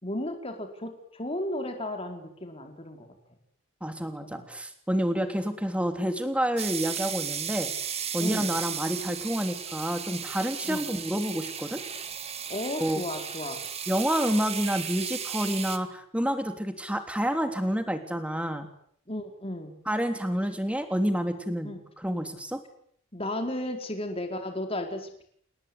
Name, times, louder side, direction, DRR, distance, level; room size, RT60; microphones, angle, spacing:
voice 1, 0.0-3.1 4.2-4.5 8.2-8.5 10.6-10.9 12.5-13.6 19.1-19.8 21.6-21.8 23.1-25.2, left 1 dB, 30° left, 4 dB, 4.6 m, -34 dB
voice 2, 3.8-7.7 8.1-11.8 12.8-13.0 13.9-18.7 19.9-22.6, equal, 5° right, 6 dB, 3.3 m, -29 dB
sound 1, 6.6-15.8, right 8 dB, 30° right, 2.2 m, -35 dB
29.0 x 19.5 x 9.7 m, 0.66 s
head